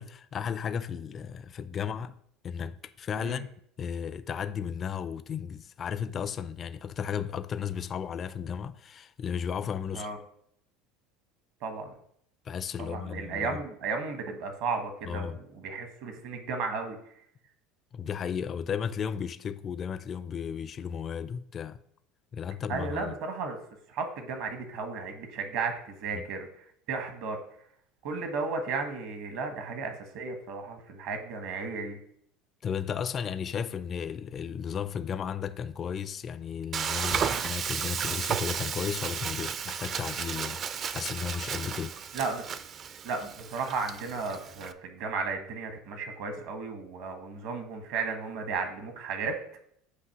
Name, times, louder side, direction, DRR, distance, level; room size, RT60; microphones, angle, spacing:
voice 1, 0.0-2.2 2.4-3.5 3.8-10.1 12.4-13.6 15.1-15.4 17.9-21.8 22.3-23.1 26.1-26.2 32.6-40.6 40.9-42.0, left 7 dB, 40° left, 0.4 m, -34 dB
voice 2, 11.6-11.9 12.8-15.3 15.6-17.2 22.7-23.6 23.9-27.4 28.0-32.0 42.1-42.4 43.0-49.4, right 4 dB, 70° right, 1.2 m, -34 dB
Frying (food), 36.7-44.7, right 7 dB, 45° right, 0.4 m, -33 dB
8.2 x 2.8 x 5.8 m
hypercardioid pair, 85°, 0 cm